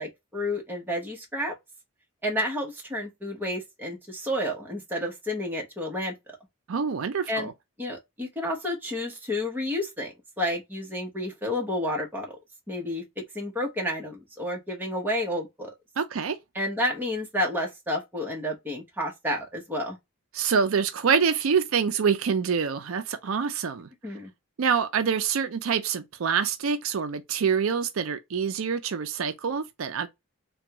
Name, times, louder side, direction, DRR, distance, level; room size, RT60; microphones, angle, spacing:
voice 1, 0.0-1.5 2.2-6.1 7.3-7.5 7.8-12.3 12.7-15.7 16.5-20.0 24.0-24.3, left 1 dB, 10° right, 1.0 m, -30 dB
voice 2, 6.7-7.5 16.0-16.4 20.3-23.9 24.6-30.1, right 6 dB, 75° right, 0.4 m, -26 dB
3.4 x 2.3 x 2.9 m
head